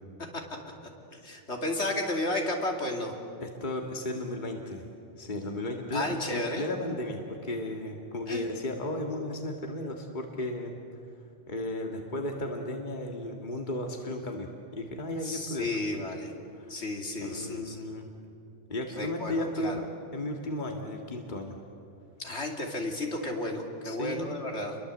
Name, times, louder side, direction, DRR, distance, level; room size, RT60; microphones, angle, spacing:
voice 1, 1.1-3.1 5.9-6.7 8.3-8.5 15.2-16.3 16.7-17.8 18.9-19.8 22.2-24.8, left 1 dB, 65° left, 2 dB, 3.0 m, -33 dB
voice 2, 3.4-4.9 5.2-10.8 11.5-15.7 16.6-16.8 17.2-18.1 18.7-21.6 23.8-24.3, left 1 dB, 40° left, 2 dB, 2.1 m, -34 dB
29.5 x 22.5 x 8.0 m, 2.6 s
omnidirectional pair, 1.2 m